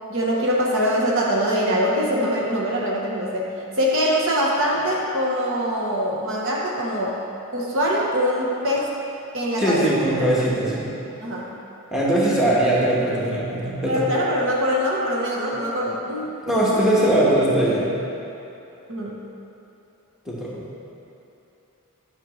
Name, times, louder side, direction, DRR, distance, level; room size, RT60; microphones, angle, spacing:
voice 1, 0.1-7.2 7.5-8.9 9.3-9.9 11.2-11.5 13.9-16.3 18.9-19.2, equal, 60° right, -3 dB, 1.0 m, -23 dB
voice 2, 9.6-10.9 11.9-14.0 16.5-17.9 20.2-20.6, right 1 dB, ahead, -7 dB, 1.3 m, -20 dB
9.9 x 6.0 x 3.2 m, 3.0 s
head